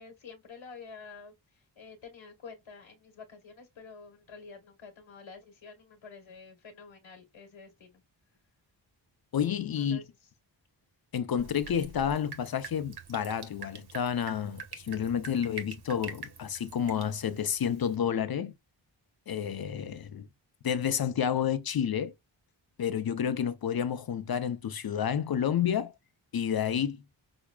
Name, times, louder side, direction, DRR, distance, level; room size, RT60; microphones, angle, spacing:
voice 1, 0.0-8.0 9.7-10.3, left 5 dB, 85° left, 1.2 m, -49 dB
voice 2, 9.3-10.0 11.1-18.5 19.3-20.3 20.6-22.1 22.8-25.9 26.3-27.0, left 8 dB, 55° left, 0.6 m, -30 dB
Drip, 11.4-18.0, right 5 dB, 55° right, 1.1 m, -46 dB
5.9 x 2.1 x 2.2 m
wide cardioid pair, 80°, 46 cm